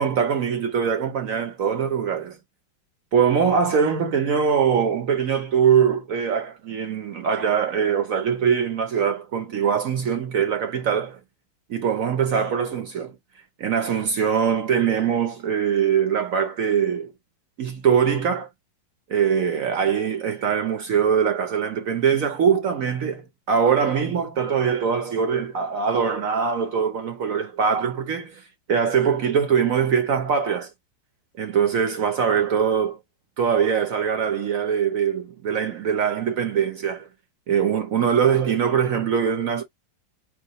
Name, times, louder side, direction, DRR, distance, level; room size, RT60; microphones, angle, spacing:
voice 1, 0.0-2.4 3.1-11.2 11.7-13.1 13.6-17.1 17.6-18.5 19.1-28.4 28.7-30.7 31.4-33.0 33.4-37.1 37.5-39.6, right 7 dB, 60° right, 0.9 m, -22 dB
4.8 x 2.1 x 4.0 m
omnidirectional pair, 2.0 m